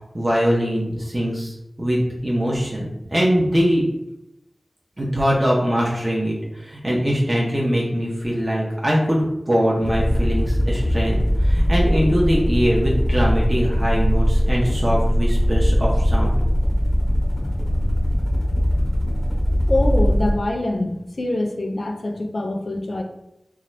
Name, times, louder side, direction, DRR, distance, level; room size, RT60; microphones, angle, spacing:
voice 1, 0.1-3.8 5.0-16.3, equal, 30° right, -5 dB, 0.7 m, -22 dB
sound 1, 9.8-20.4, equal, ahead, 0.9 m, -20 dB
voice 2, 19.7-23.0, left 1 dB, 70° left, 3 dB, 0.4 m, -24 dB
2.8 x 2.3 x 3.1 m, 0.89 s
wide cardioid pair, 45°, 0 cm